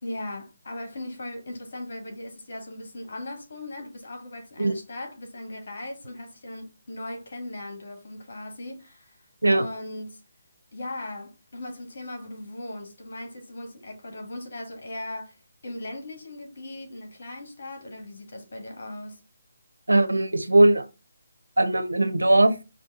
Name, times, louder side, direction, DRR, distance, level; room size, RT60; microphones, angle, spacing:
voice 1, 0.0-9.2 9.5-10.2 10.7-15.4 15.6-19.2, left 1 dB, 60° left, 1.7 m, -38 dB
voice 2, 19.9-20.8 21.6-22.5, right 2 dB, 85° right, 0.7 m, -19 dB
5.1 x 2.6 x 3.6 m
figure-of-eight pair, 150°, 0 cm